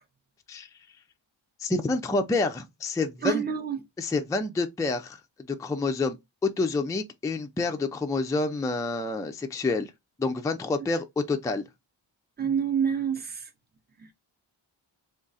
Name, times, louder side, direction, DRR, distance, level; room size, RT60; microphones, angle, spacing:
voice 1, 1.6-3.4 4.0-5.2 5.5-6.2 6.6-9.9 10.2-11.6, left 3 dB, 10° left, 0.3 m, -28 dB
voice 2, 3.2-3.8 12.4-13.5, right 7 dB, 20° right, 0.7 m, -27 dB
3.6 x 2.5 x 4.0 m
wide cardioid pair, 140°, 48 cm